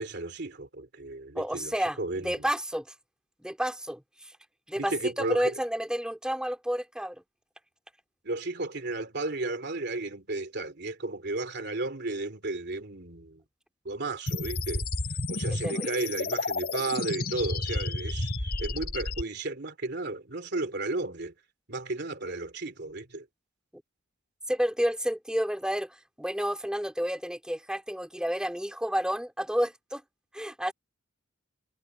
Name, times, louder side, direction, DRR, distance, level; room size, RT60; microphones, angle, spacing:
voice 1, 0.0-2.4 4.8-5.5 8.2-13.4 13.8-14.8 15.3-18.3 18.6-21.3 21.7-23.3, right 2 dB, 55° right, 3.0 m, -33 dB
voice 2, 1.3-2.9 3.4-4.3 4.7-7.2 15.6-15.9 24.5-30.0 30.3-30.7, equal, 5° right, 2.4 m, -30 dB
sound 1, 14.3-19.2, left 2 dB, 50° left, 2.8 m, -31 dB
head